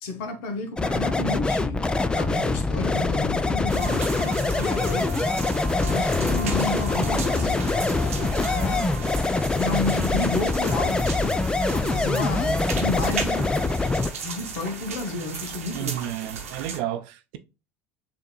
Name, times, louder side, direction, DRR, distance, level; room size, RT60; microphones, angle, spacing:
voice 1, 0.0-5.1 5.8-9.0 9.6-11.4 11.7-13.5 14.1-16.0, left 3 dB, 75° left, 1.1 m, -32 dB
sound 1, 0.8-14.1, left 3 dB, 10° left, 0.4 m, -24 dB
sound 2, 3.7-9.4, left 6 dB, 55° left, 0.7 m, -37 dB
sound 3, 3.7-16.8, right 6 dB, 90° right, 0.9 m, -36 dB
voice 2, 15.7-17.4, right 12 dB, 70° right, 0.6 m, -31 dB
6.7 x 2.9 x 2.3 m
hypercardioid pair, 75°, 7 cm